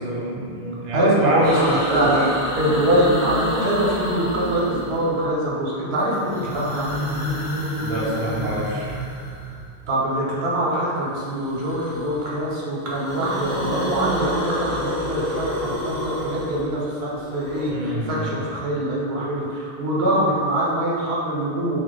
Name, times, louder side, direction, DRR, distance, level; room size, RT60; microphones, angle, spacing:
voice 1, 0.0-2.3 7.8-8.9 17.7-18.4, right 1 dB, 50° right, -5 dB, 0.6 m, -26 dB
voice 2, 0.9-2.2 2.5-6.9 9.9-21.8, right 1 dB, 80° right, -6 dB, 0.9 m, -23 dB
sound 1, 1.4-5.4 6.1-9.8 11.2-12.4 12.7-17.7, equal, 80° left, 1.2 m, -29 dB
2.7 x 2.0 x 3.8 m, 2.3 s
omnidirectional pair, 1.0 m